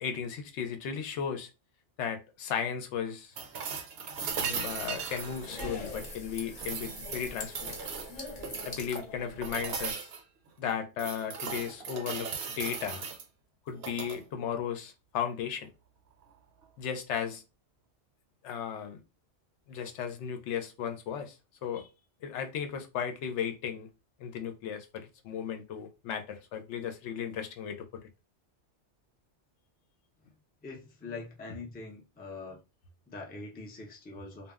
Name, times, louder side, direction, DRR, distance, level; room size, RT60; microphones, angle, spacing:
voice 1, 0.0-1.5 2.0-3.3 4.4-7.7 8.6-10.1 10.6-12.3 12.6-13.1 13.7-15.7 16.8-17.4 18.4-19.0 19.7-21.3 21.6-21.9 22.2-23.9 24.2-27.9, left 8 dB, 85° left, 0.9 m, -35 dB
sound 1, 3.4-6.2 6.6-8.8 9.4-10.2 10.7-13.2 13.7-14.2 16.2-16.3, right 6 dB, 65° right, 0.8 m, -38 dB
sound 2, 4.3-9.9, left 2 dB, 50° left, 0.8 m, -43 dB
voice 2, 30.6-32.6 33.1-34.5, left 3 dB, 15° left, 0.3 m, -43 dB
2.2 x 2.1 x 3.4 m
omnidirectional pair, 1.2 m